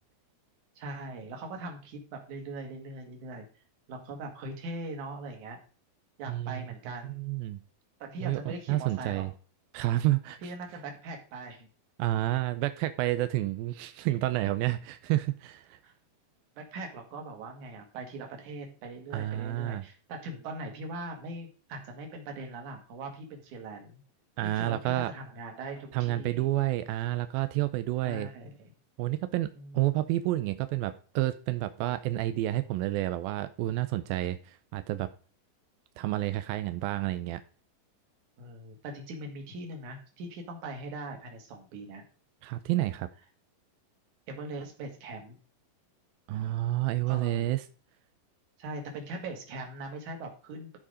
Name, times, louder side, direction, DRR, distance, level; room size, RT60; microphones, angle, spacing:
voice 1, 0.8-3.5 3.9-5.6 6.2-7.2 8.0-9.3 10.4-11.7 15.8-15.9 16.6-24.0 24.4-26.4 28.0-28.7 29.5-29.8 38.4-42.0 44.3-45.4 46.3-46.4 47.1-47.5 48.6-50.8, right 2 dB, 60° right, 3 dB, 3.2 m, -41 dB
voice 2, 6.3-6.6 7.0-7.6 8.2-9.3 9.7-10.5 12.0-15.8 19.1-19.8 24.4-25.1 25.9-28.3 29.0-29.5 29.7-35.1 36.0-37.4 42.4-43.1 46.3-47.6, right 15 dB, 90° right, 11 dB, 2.4 m, -29 dB
13.5 x 4.9 x 5.0 m, 0.38 s
omnidirectional pair, 4.1 m